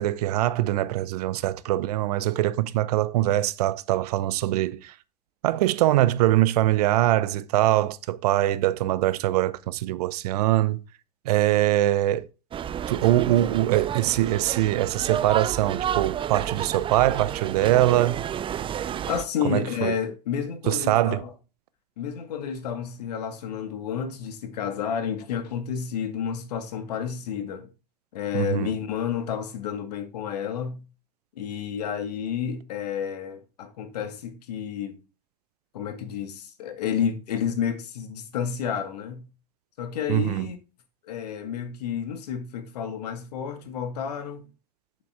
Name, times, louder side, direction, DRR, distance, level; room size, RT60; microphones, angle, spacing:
voice 1, 0.0-5.0 5.4-10.8 11.2-12.3 12.9-18.3 19.4-19.9 20.7-21.2 28.3-28.7 40.1-40.5, right 14 dB, 65° right, 0.8 m, -23 dB
sound 1, 12.5-19.2, right 9 dB, 25° right, 0.5 m, -31 dB
voice 2, 19.1-21.3 22.0-27.7 28.1-30.8 31.3-35.0 35.7-39.3 39.8-40.6 41.0-44.5, left 8 dB, 70° left, 2.2 m, -30 dB
8.9 x 7.7 x 3.7 m
hypercardioid pair, 90°, 21 cm